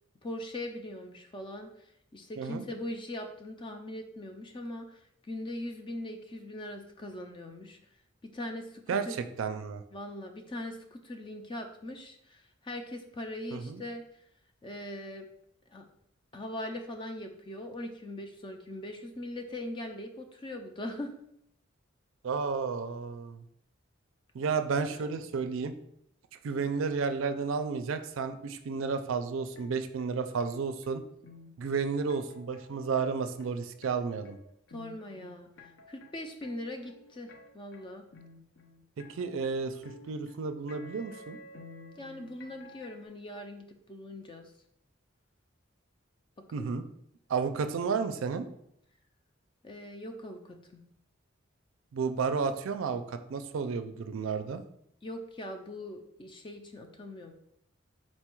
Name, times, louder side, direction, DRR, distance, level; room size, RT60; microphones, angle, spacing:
voice 1, 0.2-1.9 2.1-5.0 5.3-7.8 8.3-9.2 9.9-14.0 14.6-15.2 15.7-15.8 16.3-21.1 24.9-25.2 34.7-35.5 35.9-38.0 42.0-44.4 46.6-46.8 49.6-50.8 55.0-57.3, left 1 dB, 25° left, 5 dB, 0.4 m, -41 dB
voice 2, 9.4-9.8 13.5-13.8 22.2-23.4 24.3-25.7 26.4-31.0 31.6-34.4 39.1-41.4 46.5-46.9 47.3-48.5 51.9-54.6, right 5 dB, 75° right, 9 dB, 0.4 m, -32 dB
sound 1, 29.6-43.1, left 2 dB, 70° left, 0.7 m, -53 dB
4.3 x 2.3 x 4.4 m, 0.73 s
head